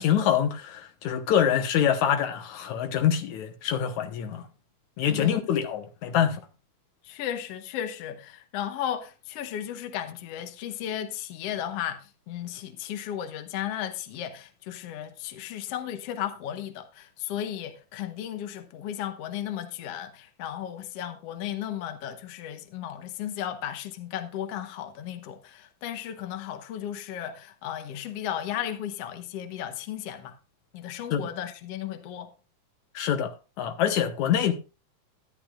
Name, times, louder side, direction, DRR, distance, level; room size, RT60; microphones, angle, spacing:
voice 1, 0.0-4.5 5.0-6.5 31.1-31.3 32.9-33.3 33.6-34.5, left 9 dB, 80° left, 2.5 m, -25 dB
voice 2, 7.0-30.4 30.7-32.3, left 10 dB, 65° left, 1.9 m, -35 dB
12.0 x 11.5 x 2.4 m
omnidirectional pair, 3.3 m